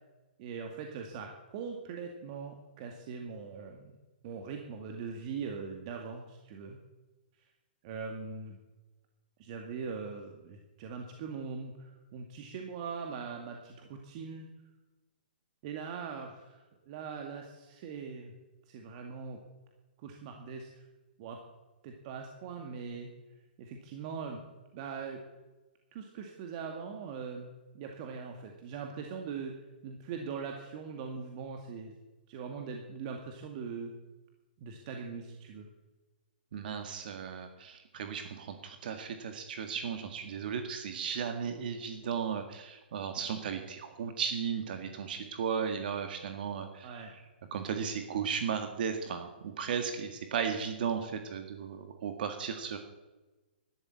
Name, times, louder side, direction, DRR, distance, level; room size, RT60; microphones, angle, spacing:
voice 1, 0.4-3.9 4.2-6.8 7.4-7.5 7.8-8.6 9.4-14.5 15.6-18.3 18.7-19.4 20.0-20.8 21.2-21.4 21.8-23.1 23.6-24.4 24.7-25.2 25.9-27.5 27.7-29.6 29.8-31.9 32.3-33.9 34.6-35.7 46.8-47.1, right 5 dB, 45° right, 3 dB, 2.1 m, -41 dB
voice 2, 36.5-46.9 47.5-52.8, right 7 dB, 60° right, 6 dB, 1.8 m, -35 dB
12.5 x 12.0 x 8.6 m, 1.2 s
hypercardioid pair, 130°, 6 cm